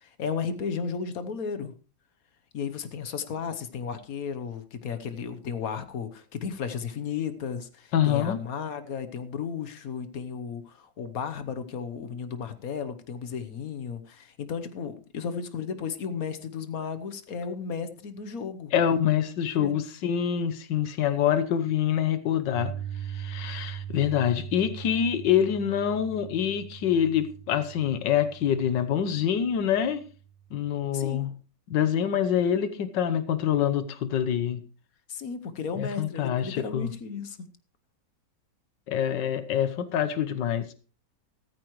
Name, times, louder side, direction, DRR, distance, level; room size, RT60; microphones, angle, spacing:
voice 1, 0.0-1.7 2.5-18.7 19.6-19.7 30.9-31.3 35.1-37.4, left 6 dB, 60° left, 10 dB, 1.4 m, -34 dB
voice 2, 7.9-8.4 18.7-22.7 23.1-30.0 30.5-31.3 31.7-34.6 35.8-36.9 38.9-40.7, left 9 dB, 85° left, 11 dB, 1.6 m, -26 dB
Piano, 22.5-30.6, right 10 dB, 60° right, 0.9 m, -40 dB
14.0 x 13.5 x 3.1 m, 0.37 s
omnidirectional pair, 1.9 m